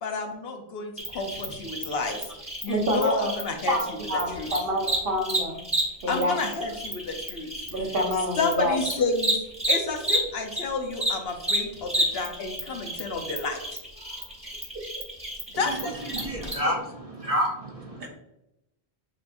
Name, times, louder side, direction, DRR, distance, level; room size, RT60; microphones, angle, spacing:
voice 1, 0.0-2.3 2.6-3.7 4.3-4.5 6.1-7.5 8.4-9.4 9.7-13.6 15.6-16.8, left 3 dB, 70° left, 4 dB, 0.9 m, -30 dB
Cricket, 1.0-10.6 10.9-16.5, right 1 dB, 5° right, 1.0 m, -31 dB
voice 2, 2.7-3.4 3.7-5.6 6.0-6.4 7.7-8.8 14.4-14.9 18.0-18.1, equal, 60° right, 0 dB, 1.2 m, -27 dB
voice 3, 16.1-18.1, equal, 40° right, 0 dB, 0.6 m, -29 dB
7.0 x 2.8 x 2.5 m, 0.88 s
omnidirectional pair, 1.1 m